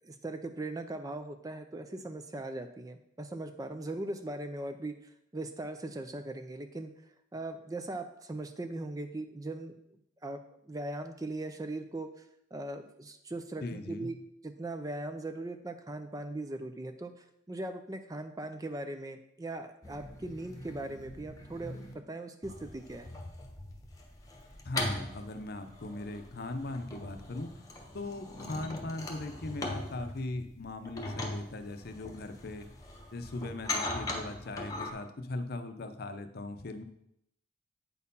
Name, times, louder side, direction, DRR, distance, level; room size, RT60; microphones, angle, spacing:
voice 1, 0.0-6.9 7.3-9.8 10.2-10.4 10.7-12.1 12.5-14.2 14.4-23.2, right 2 dB, 15° right, 8 dB, 0.4 m, -39 dB
voice 2, 13.6-14.1 24.6-27.5 27.9-32.7 33.1-36.8, left 2 dB, 50° left, 8 dB, 0.7 m, -39 dB
sound 1, 19.8-21.9 22.4-34.9, left 2 dB, 15° left, 1.0 m, -40 dB
8.4 x 4.4 x 5.4 m, 0.75 s
head